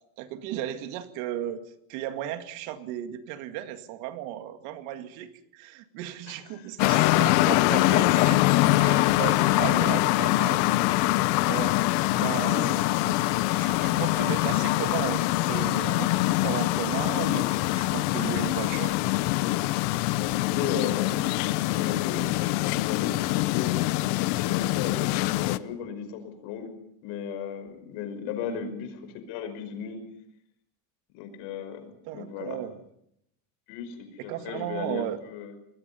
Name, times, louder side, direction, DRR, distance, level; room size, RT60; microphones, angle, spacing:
voice 1, 0.2-1.6 1.9-10.6 11.4-11.8 12.1-13.2 13.6-19.0 28.5-28.7 32.0-32.8 34.2-35.2, right 12 dB, 75° right, 8 dB, 2.3 m, -35 dB
voice 2, 6.3-6.7 12.0-12.8 20.1-23.8 24.2-26.7 27.0-30.0 31.1-32.6 33.7-35.5, left 8 dB, 70° left, 8 dB, 5.6 m, -36 dB
sound 1, 6.8-25.6, left 18 dB, 85° left, 1.0 m, -24 dB
27.0 x 21.0 x 5.6 m, 0.75 s
cardioid pair, 165°, 48 cm